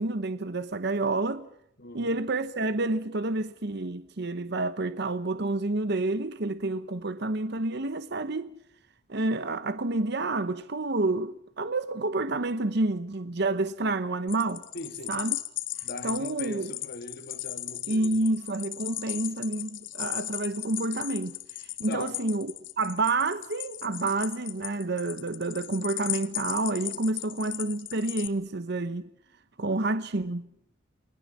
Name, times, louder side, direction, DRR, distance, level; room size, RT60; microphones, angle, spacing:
voice 1, 0.0-1.5 1.9-8.5 9.1-14.6 15.1-15.4 16.0-16.7 17.9-29.1 29.6-30.5, right 2 dB, 60° right, 1.0 m, -29 dB
voice 2, 1.8-2.1 14.7-15.2 15.8-18.2 21.9-22.2, left 2 dB, 55° left, 3.1 m, -41 dB
sound 1, 14.3-28.3, left 16 dB, 80° left, 1.7 m, -37 dB
29.5 x 20.5 x 7.4 m
head